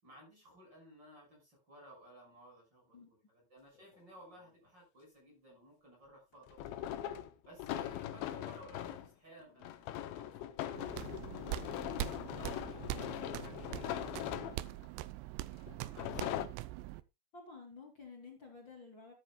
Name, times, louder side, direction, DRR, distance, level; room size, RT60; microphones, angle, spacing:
voice 1, 0.0-6.9 7.5-11.9 12.3-14.8 15.8-16.3, equal, 25° right, -1 dB, 6.8 m, -57 dB
sound 1, 3.8-3.9 6.5-9.1 9.6-14.9 15.7-16.5, left 12 dB, 85° left, 3.3 m, -41 dB
sound 2, 10.8-17.0, right 16 dB, 85° right, 2.9 m, -43 dB
voice 2, 17.3-19.1, left 4 dB, 30° left, 1 dB, 2.8 m, -52 dB
13.0 x 12.5 x 2.3 m, 0.24 s
omnidirectional pair, 5.0 m